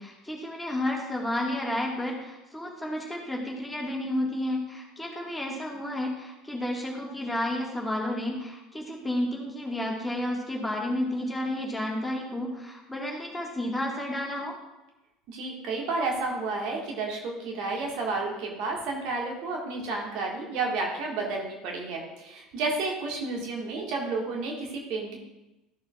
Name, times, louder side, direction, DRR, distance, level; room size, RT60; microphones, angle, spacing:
voice 1, 0.0-14.6, left 1 dB, 10° left, -1 dB, 1.8 m, -31 dB
voice 2, 15.3-25.2, right 3 dB, 50° right, -1 dB, 1.7 m, -31 dB
13.5 x 7.0 x 2.4 m, 0.99 s
figure-of-eight pair, 65°, 0 cm